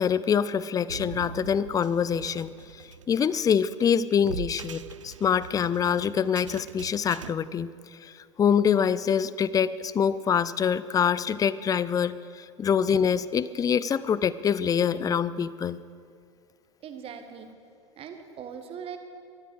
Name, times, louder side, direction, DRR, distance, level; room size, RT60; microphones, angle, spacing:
voice 1, 0.0-2.5 3.1-7.7 8.0-8.1 8.4-15.8, left 7 dB, 25° left, 17 dB, 0.5 m, -25 dB
sound 1, 0.9-7.3, right 8 dB, 80° right, 0.4 m, -42 dB
voice 2, 16.8-17.5 18.0-19.0, right 7 dB, 35° right, 7 dB, 1.7 m, -40 dB
18.5 x 13.5 x 4.7 m, 2.3 s
figure-of-eight pair, 75°, 16 cm